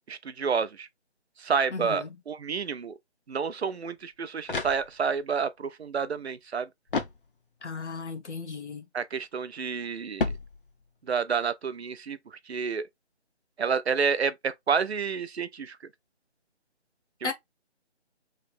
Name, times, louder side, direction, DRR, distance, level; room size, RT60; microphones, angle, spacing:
voice 1, 0.1-0.9 1.4-2.9 3.3-6.7 8.9-10.3 11.1-12.9 13.6-15.8, right 6 dB, 65° right, 0.6 m, -29 dB
voice 2, 1.7-2.2 7.6-8.9 17.2-17.3, left 4 dB, 80° left, 1.2 m, -35 dB
sound 1, 4.0-5.3 6.9-7.8 10.2-11.1, left 3 dB, 50° left, 0.5 m, -34 dB
3.3 x 2.6 x 3.7 m
figure-of-eight pair, 170°, 34 cm